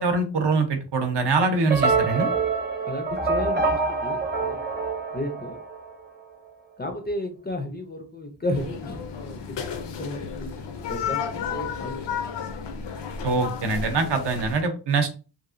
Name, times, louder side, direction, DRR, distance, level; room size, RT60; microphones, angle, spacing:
voice 1, 0.0-2.3 13.2-15.2, right 3 dB, 70° right, 6 dB, 0.7 m, -23 dB
sound 1, 1.7-6.0, right 4 dB, 25° right, 0.6 m, -25 dB
voice 2, 2.8-4.6 5.1-5.6 6.8-9.4 9.7-11.9 12.3-12.4, left 1 dB, 25° left, 4 dB, 0.3 m, -33 dB
sound 2, 8.5-14.6, left 6 dB, 80° left, 0.6 m, -33 dB
2.9 x 2.4 x 2.4 m, 0.35 s
wide cardioid pair, 165°, 43 cm